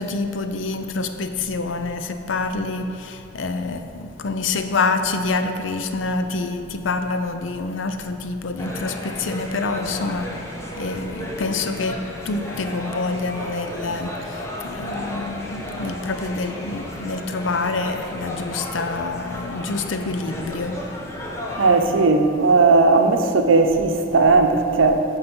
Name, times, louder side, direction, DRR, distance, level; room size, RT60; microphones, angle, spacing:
voice 1, 0.0-10.3 10.8-14.2 14.6-20.9, left 3 dB, 80° left, 0.5 m, -26 dB
sound 1, 8.6-21.8, left 1 dB, 15° left, 0.9 m, -33 dB
voice 2, 21.6-25.0, right 3 dB, 90° right, 0.7 m, -16 dB
8.8 x 4.0 x 6.1 m
head